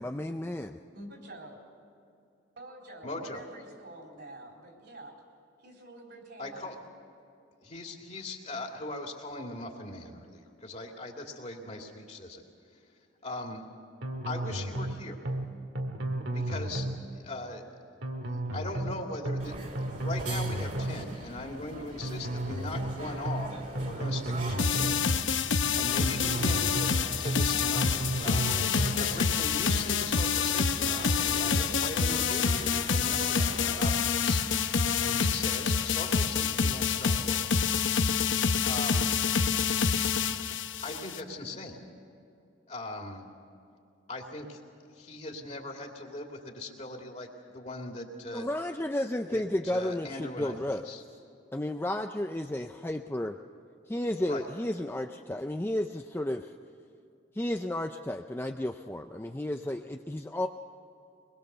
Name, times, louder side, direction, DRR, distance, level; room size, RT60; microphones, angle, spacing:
voice 1, 0.0-0.8 48.3-50.9 51.5-53.4 53.9-56.5 57.3-60.5, left 1 dB, 10° left, 5 dB, 0.4 m, -32 dB
voice 2, 0.9-1.6 2.6-5.2 5.6-6.7, right 1 dB, 60° right, 0 dB, 4.0 m, -47 dB
voice 3, 3.0-3.4 6.4-6.7 7.6-12.4 12.7-12.9 13.2-13.7 14.2-15.2 16.3-16.9 17.1-17.6 18.5-19.5 19.9-25.0 25.4-26.9 27.2-31.1 31.3-37.6 38.6-39.1 40.8-41.8 42.7-43.3 44.1-44.6 44.9-48.5 49.3-51.0 54.2-54.4, left 2 dB, 35° left, 1 dB, 2.5 m, -40 dB
sound 1, 14.0-14.9 15.2-15.5 15.7-17.0 18.0-18.9 19.2-19.5 19.7-21.0 22.0-22.9 23.2-23.5 23.7-25.0 26.0-26.9 27.2-27.5 27.7-29.0, right 1 dB, 80° right, 2.0 m, -33 dB
sound 2, 19.4-33.9, right 1 dB, 40° right, 2.6 m, -43 dB
Titan Fall Music, 24.6-41.2, left 6 dB, 80° left, 0.9 m, -27 dB
23.5 x 21.0 x 6.8 m, 2.6 s
head